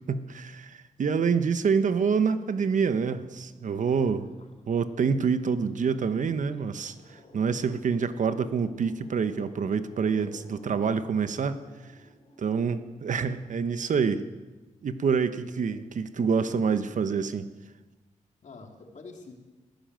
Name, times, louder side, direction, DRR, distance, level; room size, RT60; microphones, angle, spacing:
voice 1, 0.1-4.3 4.7-11.6 12.4-14.3 14.8-17.5, right 6 dB, 65° right, 11 dB, 1.2 m, -27 dB
sound 1, 2.7-13.7, left 1 dB, 50° left, 4.1 m, -56 dB
voice 2, 4.0-4.5 10.2-10.5 15.6-15.8 18.4-19.3, left 3 dB, 65° left, 3 dB, 3.2 m, -47 dB
22.0 x 15.5 x 7.6 m, 1.2 s
wide cardioid pair, 155°, 14 cm